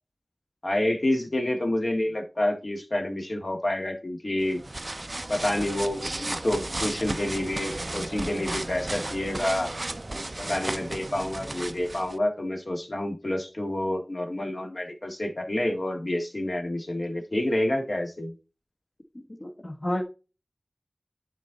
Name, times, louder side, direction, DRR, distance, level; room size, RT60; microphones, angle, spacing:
voice 1, 0.6-4.6 5.3-9.7 10.4-18.3, left 1 dB, 55° left, 3 dB, 1.9 m, -28 dB
sound 1, 4.4-12.2, right 2 dB, 45° right, 0.4 m, -34 dB
voice 2, 19.4-20.0, left 1 dB, 40° left, 1 dB, 1.3 m, -30 dB
11.0 x 4.2 x 3.9 m, 0.31 s
wide cardioid pair, 50°, 0 cm